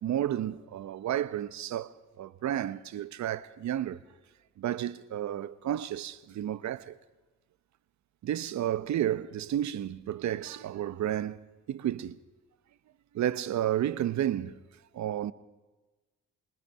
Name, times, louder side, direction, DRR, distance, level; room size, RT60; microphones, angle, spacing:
voice 1, 0.0-4.0 4.6-6.9 8.2-11.4 11.7-12.2 13.1-14.5 14.9-15.3, right 11 dB, 65° right, 0.9 m, -31 dB
27.0 x 24.0 x 5.6 m
cardioid pair, 90°, 30 cm